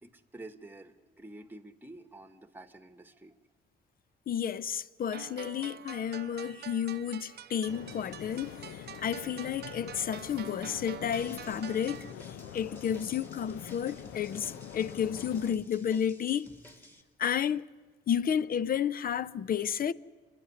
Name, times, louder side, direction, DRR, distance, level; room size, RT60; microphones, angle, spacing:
voice 1, 0.0-3.3, right 2 dB, 10° right, 1.2 m, -49 dB
voice 2, 4.3-8.7 9.0-12.1 12.5-16.5 17.2-17.6 18.1-19.9, left 8 dB, 45° left, 0.6 m, -31 dB
sound 1, 5.1-12.1, right 10 dB, 55° right, 0.7 m, -47 dB
sound 2, 7.7-15.6, left 10 dB, 85° left, 0.8 m, -45 dB
sound 3, 11.1-17.0, equal, 10° left, 2.1 m, -54 dB
27.5 x 10.5 x 9.8 m
cardioid pair, 90°, 20 cm